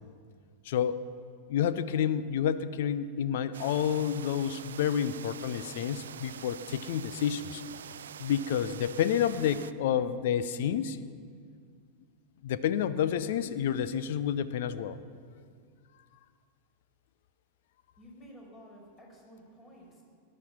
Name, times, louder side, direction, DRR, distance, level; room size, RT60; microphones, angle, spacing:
voice 1, 0.6-1.0 1.5-7.6 8.2-11.0 12.4-15.0, left 9 dB, 55° left, 14 dB, 0.6 m, -29 dB
sound 1, 3.5-9.7, right 9 dB, 65° right, 0.4 m, -45 dB
voice 2, 18.0-20.0, equal, 25° left, -1 dB, 5.5 m, -52 dB
19.0 x 11.0 x 6.0 m, 2.1 s
figure-of-eight pair, 90°, 0 cm